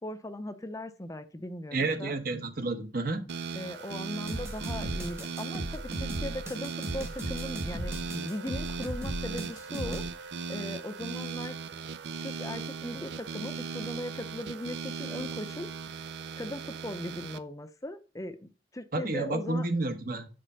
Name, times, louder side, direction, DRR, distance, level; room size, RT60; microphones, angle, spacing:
voice 1, 0.0-2.2 3.5-11.6 12.2-15.7 16.4-19.7, left 1 dB, 20° left, 0.6 m, -39 dB
voice 2, 1.7-3.2 18.9-20.3, right 2 dB, 55° right, 1.2 m, -30 dB
sound 1, 3.3-17.4, right 5 dB, 70° right, 0.5 m, -38 dB
sound 2, 4.3-10.1, equal, 15° right, 1.2 m, -37 dB
7.6 x 5.1 x 5.5 m
head